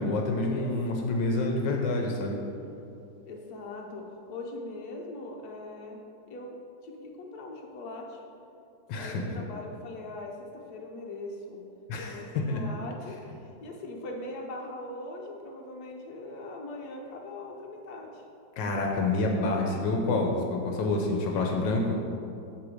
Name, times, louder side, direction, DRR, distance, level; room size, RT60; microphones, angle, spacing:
voice 1, 0.0-2.4 8.9-9.2 11.9-12.6 18.6-22.0, left 2 dB, 80° left, 1 dB, 1.4 m, -28 dB
voice 2, 3.3-6.0 6.3-8.2 9.0-11.6 12.0-18.2, left 2 dB, 60° left, 0 dB, 1.3 m, -41 dB
8.1 x 3.4 x 6.2 m, 2.6 s
omnidirectional pair, 2.0 m